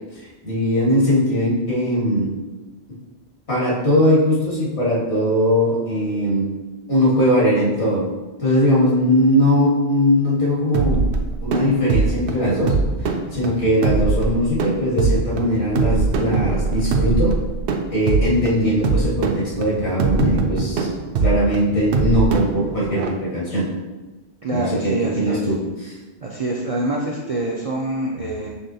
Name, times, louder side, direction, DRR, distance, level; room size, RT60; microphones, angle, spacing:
voice 1, 0.4-2.3 3.5-6.5 6.9-8.0 8.4-11.1 11.4-12.7 13.0-17.3 17.9-20.9 21.2-23.7 24.5-25.5 25.8-25.9, equal, 70° left, -6 dB, 1.8 m, -20 dB
sound 1, 10.7-23.1, right 4 dB, 75° right, 0.8 m, -22 dB
voice 2, 24.4-25.5 26.2-28.5, right 1 dB, 50° right, -3 dB, 0.4 m, -25 dB
5.8 x 3.4 x 2.7 m, 1.2 s
omnidirectional pair, 1.2 m